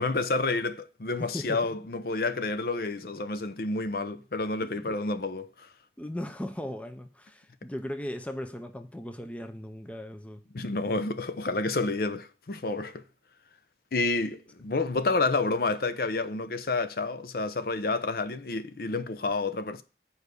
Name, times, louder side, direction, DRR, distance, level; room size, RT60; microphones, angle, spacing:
voice 1, 0.0-5.7 10.5-13.0 13.9-19.8, left 3 dB, 55° left, 0.6 m, -29 dB
voice 2, 1.2-1.6 4.6-5.0 6.0-10.4, left 1 dB, 10° left, 0.5 m, -37 dB
7.0 x 4.8 x 6.6 m
head